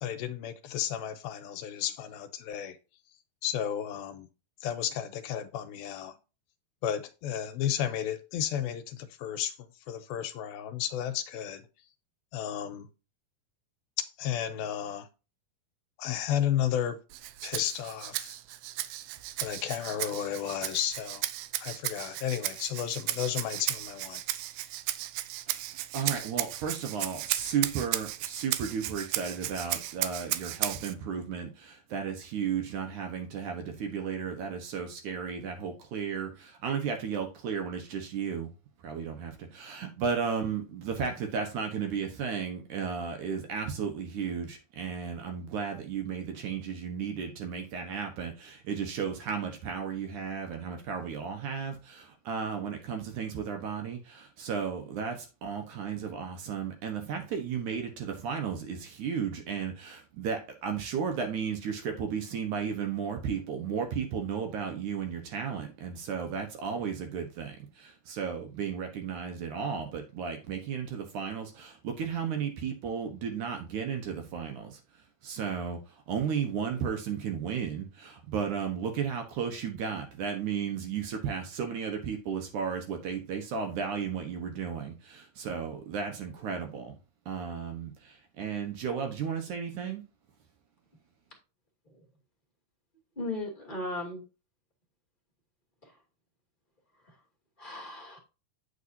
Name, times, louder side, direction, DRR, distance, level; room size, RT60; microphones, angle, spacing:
voice 1, 0.0-2.8 3.4-4.3 4.6-6.2 6.8-11.6 12.3-12.9 14.0-15.1 16.0-17.0 17.4-18.4 19.4-21.3 21.6-24.2, left 10 dB, 90° left, 2.6 m, -33 dB
Rattle (instrument), 17.1-30.9, right 15 dB, 85° right, 2.5 m, -35 dB
voice 2, 25.9-38.5 38.8-74.8 75.2-75.8 76.1-86.9 87.3-90.0, right 6 dB, 65° right, 2.4 m, -34 dB
voice 3, 93.2-94.2 95.8-96.0 97.6-98.2, left 2 dB, 15° left, 1.8 m, -37 dB
8.2 x 8.2 x 2.8 m
omnidirectional pair, 4.3 m